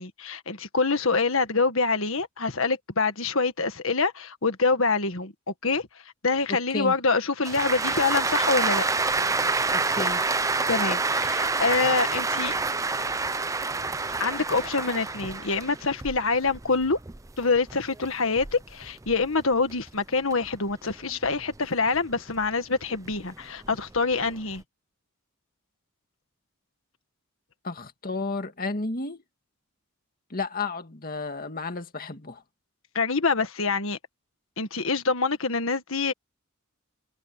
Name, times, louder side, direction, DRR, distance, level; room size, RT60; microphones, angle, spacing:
voice 1, 0.0-5.3 5.6-5.9 6.2-8.8 10.7-12.5 14.2-17.0 17.4-24.6 33.0-34.0 34.6-36.1, left 4 dB, 65° left, 1.8 m, -25 dB
voice 2, 6.5-6.9 9.7-10.2 27.6-29.2 30.3-32.4, left 3 dB, 40° left, 2.1 m, -32 dB
sound 1, 7.4-19.9 20.3-22.4 22.9-24.6, right 3 dB, 15° right, 0.5 m, -28 dB
head